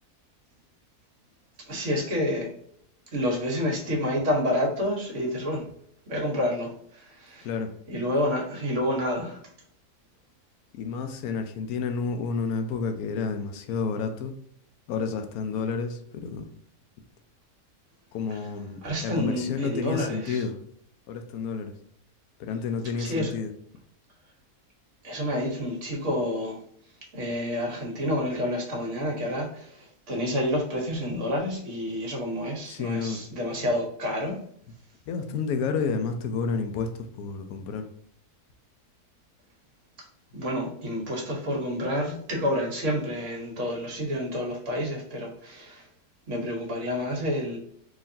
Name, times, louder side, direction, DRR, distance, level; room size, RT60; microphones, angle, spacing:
voice 1, 1.7-2.5 3.1-5.6 6.1-6.7 7.2-7.4 7.9-9.4 18.8-20.4 23.0-23.3 25.0-26.6 27.1-29.5 30.1-34.4 40.3-45.8 46.3-47.6, left 1 dB, 55° right, 0 dB, 1.4 m, -28 dB
voice 2, 10.7-14.3 14.9-16.5 18.1-20.6 21.1-21.7 22.4-23.5 32.6-33.2 35.1-37.9, left 5 dB, 75° left, 6 dB, 1.1 m, -30 dB
4.0 x 3.0 x 2.7 m, 0.66 s
omnidirectional pair, 1.6 m